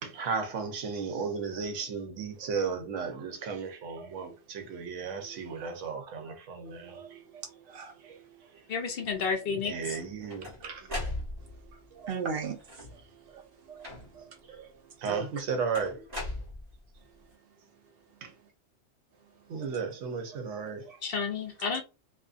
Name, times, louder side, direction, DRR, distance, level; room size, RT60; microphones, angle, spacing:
voice 1, 0.0-7.4 7.7-8.2 8.5-8.6 9.5-10.9 11.9-12.1 13.3-13.4 13.7-13.9 14.1-14.7 15.0-16.1 18.2-18.3 19.5-21.0, right 5 dB, 85° right, 1.0 m, -35 dB
voice 2, 5.2-5.6 6.7-8.3 11.4-11.7 12.1-12.9 13.1-13.3 14.1-14.4 14.8-15.3 19.4-19.5, right 6 dB, 65° right, 0.7 m, -39 dB
voice 3, 8.7-10.0 21.0-21.8, left 5 dB, 60° left, 0.7 m, -31 dB
sound 1, 9.9-11.7 12.6-13.1 13.8-14.4 15.7-17.0, left 1 dB, 35° right, 1.1 m, -38 dB
2.5 x 2.5 x 2.4 m
omnidirectional pair, 1.2 m